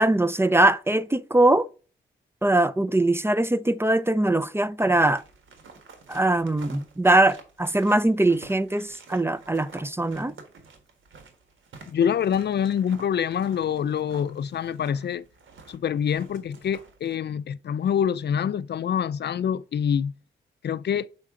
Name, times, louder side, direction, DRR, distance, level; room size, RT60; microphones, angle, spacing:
voice 1, 0.0-1.7 2.4-5.2 6.1-10.3, right 2 dB, 10° right, 0.5 m, -21 dB
sound 1, 4.8-17.2, right 4 dB, 85° right, 1.5 m, -50 dB
voice 2, 11.9-15.3 15.7-20.1 20.6-21.1, left 8 dB, 60° left, 0.4 m, -26 dB
6.6 x 4.8 x 3.7 m
cardioid pair, 65°, 20 cm